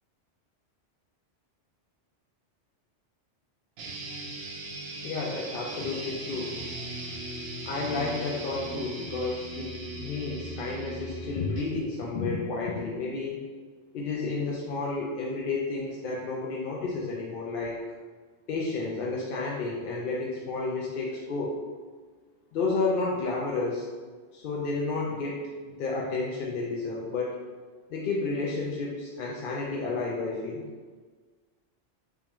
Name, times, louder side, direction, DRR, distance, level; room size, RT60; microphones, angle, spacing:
sound 1, 3.8-11.8, right 1 dB, 65° right, 0.8 m, -38 dB
voice 1, 5.0-6.5 7.6-13.5 13.9-17.8 18.5-21.5 22.5-23.9 24.3-25.4 25.7-27.4 27.9-30.6, left 3 dB, 60° left, -3 dB, 0.6 m, -31 dB
3.6 x 3.4 x 3.0 m, 1.4 s
omnidirectional pair, 1.2 m